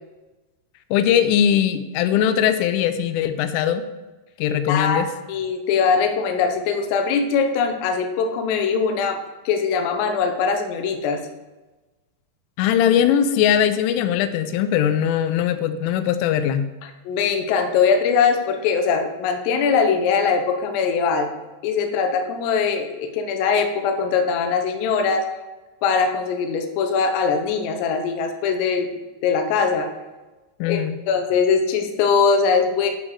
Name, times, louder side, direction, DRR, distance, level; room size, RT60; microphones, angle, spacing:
voice 1, 0.9-3.8 4.4-5.1 12.6-16.7 30.6-31.0, left 9 dB, 90° left, 10 dB, 3.1 m, -20 dB
voice 2, 4.5-11.2 16.8-21.3 21.6-25.3 25.8-28.9 29.2-29.9 30.7-32.9, left 5 dB, 75° left, 5 dB, 2.9 m, -21 dB
11.5 x 5.3 x 4.8 m, 1.1 s
omnidirectional pair, 5.5 m